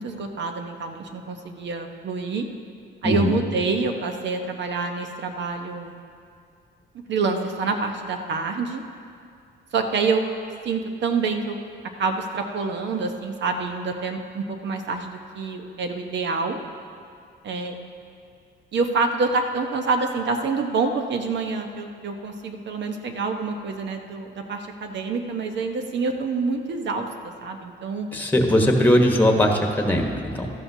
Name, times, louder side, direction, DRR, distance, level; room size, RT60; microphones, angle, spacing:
voice 1, 0.0-2.5 3.0-6.0 7.1-8.8 9.7-10.2 10.6-11.6 12.0-16.6 17.4-17.8 18.7-27.1 27.4-28.1, right 4 dB, 65° right, 4 dB, 1.0 m, -27 dB
voice 2, 3.0-3.3 28.1-30.5, left 1 dB, 10° left, 2 dB, 1.2 m, -20 dB
13.0 x 12.0 x 2.8 m, 2.4 s
cardioid pair, 90°, 20 cm